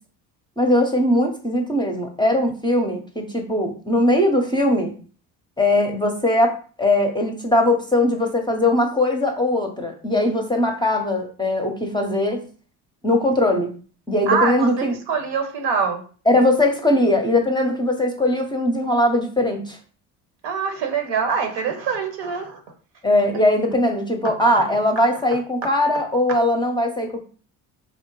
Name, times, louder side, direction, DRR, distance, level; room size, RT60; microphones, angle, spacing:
voice 1, 0.6-4.9 5.6-12.4 13.0-13.7 14.1-14.9 16.3-19.8 23.0-27.2, left 1 dB, 10° left, 3 dB, 0.7 m, -20 dB
voice 2, 14.3-16.0 20.4-22.6, right 5 dB, 65° right, 5 dB, 1.0 m, -24 dB
4.2 x 2.1 x 3.0 m, 0.40 s
hypercardioid pair, 65°, 46 cm